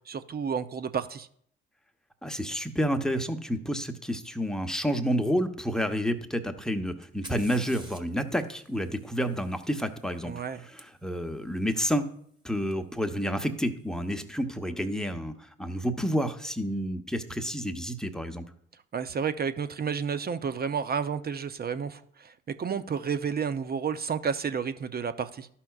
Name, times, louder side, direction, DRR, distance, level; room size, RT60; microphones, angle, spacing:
voice 1, 0.1-1.3 10.2-10.7 18.9-25.5, right 6 dB, 35° right, 11 dB, 0.6 m, -31 dB
voice 2, 2.2-10.3 10.7-12.0 12.4-18.4, equal, ahead, 6 dB, 0.9 m, -29 dB
Fire, 7.0-10.8 12.7-12.8 13.6-14.0, right 1 dB, 15° right, 1.5 m, -51 dB
13.0 x 5.6 x 2.4 m, 0.65 s
hypercardioid pair, 50°, 29 cm